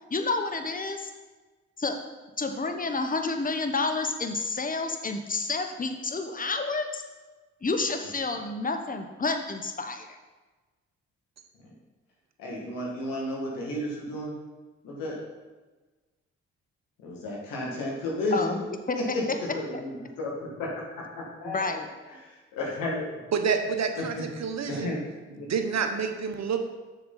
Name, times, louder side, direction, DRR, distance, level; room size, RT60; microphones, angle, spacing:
voice 1, 0.1-1.1 1.8-2.0 2.4-7.0 7.6-10.2 18.3-18.6 18.9-19.0 21.4-21.9, left 3 dB, 25° left, 6 dB, 1.0 m, -29 dB
voice 2, 12.4-14.4 14.8-15.2 17.0-18.6 18.9-21.8 22.2-23.1 23.9-24.3 24.6-25.0 25.3-25.5, left 1 dB, 80° left, -3 dB, 2.1 m, -32 dB
voice 3, 23.3-25.0 25.4-26.6, right 6 dB, 55° right, 6 dB, 1.0 m, -28 dB
7.0 x 6.9 x 4.0 m, 1.2 s
hypercardioid pair, 45°, 33 cm